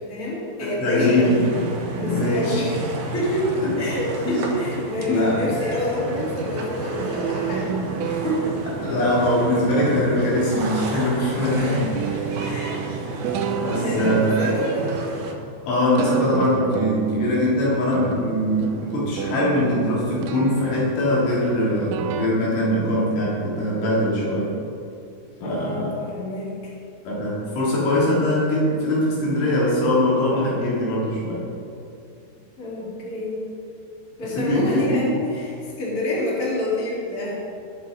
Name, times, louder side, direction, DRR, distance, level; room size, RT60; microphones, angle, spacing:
voice 1, 0.1-1.3 2.0-2.7 3.1-3.5 3.8-7.8 8.1-8.6 12.4-12.8 13.6-15.0 25.4-26.7 32.6-33.4 34.2-37.4, left 1 dB, 20° left, -7 dB, 3.2 m, -27 dB
voice 2, 0.6-1.6 1.9-2.7 4.3-4.4 5.1-5.4 8.8-12.4 13.6-14.4 15.7-24.5 25.4-25.9 27.1-31.5 34.4-35.0, left 1 dB, 85° left, -7 dB, 5.7 m, -22 dB
sound 1, 1.0-15.3, right 2 dB, 65° right, 2.0 m, -31 dB
sound 2, 7.0-22.3, right 7 dB, 85° right, 3.0 m, -31 dB
21.0 x 7.2 x 4.0 m, 2.7 s
omnidirectional pair, 5.3 m